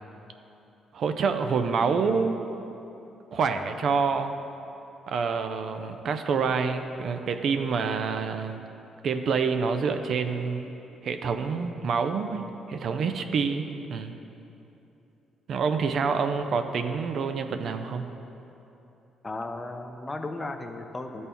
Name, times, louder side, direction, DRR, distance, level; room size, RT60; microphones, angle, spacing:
voice 1, 0.9-2.4 3.3-4.3 5.1-8.6 9.0-10.7 11.0-14.2 15.5-18.1, right 5 dB, 60° right, 7 dB, 0.4 m, -27 dB
voice 2, 19.2-21.3, left 2 dB, 25° left, 6 dB, 0.5 m, -35 dB
12.0 x 4.3 x 3.4 m, 2.9 s
cardioid pair, 90°, 0 cm